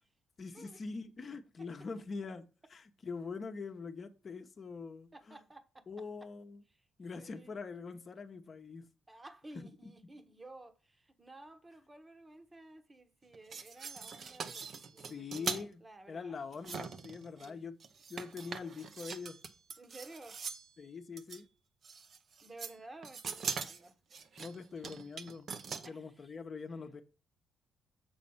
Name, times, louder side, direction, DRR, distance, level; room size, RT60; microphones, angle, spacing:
voice 1, 0.4-5.4 5.9-6.6 7.0-8.9 9.5-9.9 15.1-15.8 16.1-17.8 18.1-19.4 20.8-21.5 24.4-25.5 25.9-27.0, left 4 dB, 40° left, 1.0 m, -44 dB
voice 2, 5.1-5.9 6.7-6.9 7.2-7.6 9.1-16.4 17.4-17.7 19.8-20.4 22.4-24.0 25.8-26.4, right 2 dB, 20° right, 1.2 m, -54 dB
sound 1, 13.3-15.7 16.5-17.5 17.8-20.7 21.2-21.4 21.8-22.8 23.0-25.9, right 5 dB, 55° right, 0.8 m, -42 dB
7.1 x 4.2 x 5.5 m
cardioid pair, 90°, 0 cm